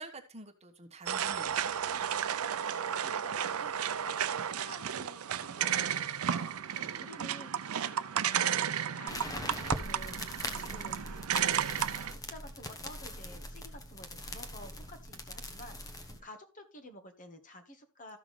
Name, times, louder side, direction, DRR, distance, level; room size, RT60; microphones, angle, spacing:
voice 1, 0.0-1.7 6.7-7.1 16.1-16.2, right 2 dB, 30° right, 5 dB, 1.2 m, -49 dB
sound 1, 1.1-12.1, right 9 dB, 80° right, 0.5 m, -33 dB
voice 2, 2.7-8.4 8.9-10.2 10.5-11.5 12.1-18.2, left 1 dB, 40° left, 6 dB, 1.5 m, -51 dB
sound 2, 9.1-16.2, left 1 dB, 15° left, 1.1 m, -41 dB
14.0 x 6.0 x 3.2 m, 0.29 s
head